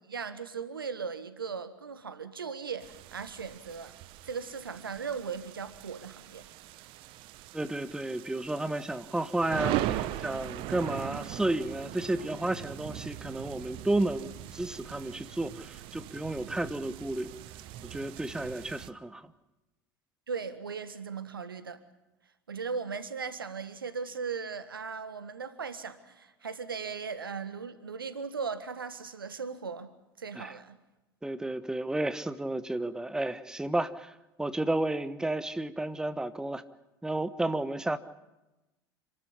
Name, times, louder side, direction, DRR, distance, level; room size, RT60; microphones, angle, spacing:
voice 1, 0.1-3.9 4.2-6.4 20.3-21.8 22.5-29.9 30.2-30.8, right 5 dB, 80° right, 12 dB, 1.5 m, -38 dB
sound 1, 2.8-18.9, right 13 dB, 50° right, 1.1 m, -40 dB
voice 2, 7.5-17.3 17.8-19.3 30.3-30.5 31.2-34.1 34.4-36.6 37.0-38.0, right 2 dB, 5° right, 13 dB, 1.1 m, -32 dB
27.5 x 13.0 x 10.0 m, 1.0 s
figure-of-eight pair, 75°, 12 cm